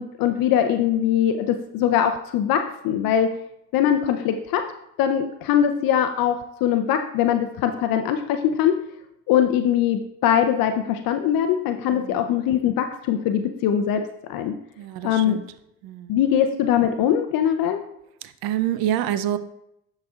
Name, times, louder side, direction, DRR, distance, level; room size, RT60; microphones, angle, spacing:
voice 1, 0.0-3.3 3.7-4.7 5.0-8.8 9.3-14.0 14.3-14.5 15.0-15.4 16.1-17.8, left 9 dB, 60° left, 7 dB, 0.6 m, -22 dB
voice 2, 11.9-12.4 14.8-15.4 15.8-16.2 18.4-19.4, right 11 dB, 60° right, 12 dB, 0.6 m, -27 dB
12.5 x 4.2 x 2.4 m, 0.78 s
hypercardioid pair, 65°, 40 cm